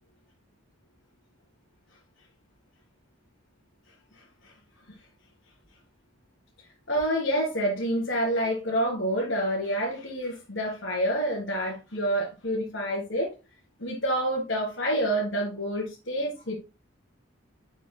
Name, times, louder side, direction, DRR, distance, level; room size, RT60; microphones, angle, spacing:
voice 1, 4.2-4.5 6.9-13.3 13.8-16.6, equal, 65° left, 3.3 m, -28 dB
8.3 x 6.6 x 2.2 m
head